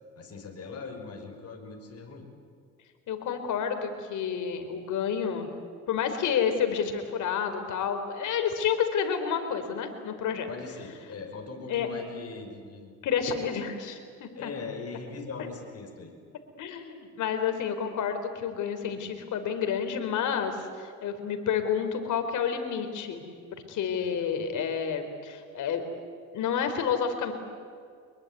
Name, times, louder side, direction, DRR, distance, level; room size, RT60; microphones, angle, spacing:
voice 1, 0.2-2.3 10.5-12.9 14.4-16.1 24.0-24.4, left 4 dB, 55° left, 3 dB, 5.9 m, -40 dB
voice 2, 3.1-5.5 5.9-10.5 11.7-11.9 13.0-14.5 16.6-23.2 23.5-25.8 26.3-27.3, left 7 dB, 80° left, 7 dB, 4.0 m, -29 dB
25.0 x 22.0 x 9.3 m, 2.2 s
cardioid pair, 90°, 30 cm